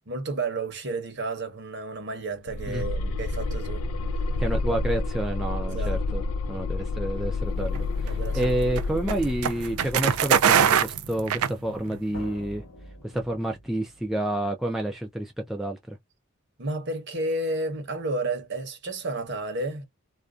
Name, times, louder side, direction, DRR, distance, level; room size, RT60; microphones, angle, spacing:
voice 1, 0.1-3.9 5.7-6.0 8.0-8.4 9.0-9.1 16.6-19.9, right 2 dB, 55° right, 0.9 m, -31 dB
sound 1, 2.5-11.4, left 2 dB, 85° left, 0.4 m, -30 dB
voice 2, 4.4-6.2 6.5-12.6 13.0-16.0, right 1 dB, ahead, 0.3 m, -29 dB
sound 2, 7.7-12.1, right 8 dB, 80° right, 0.4 m, -24 dB
sound 3, 12.1-14.8, equal, 60° left, 0.9 m, -46 dB
2.5 x 2.2 x 2.3 m
head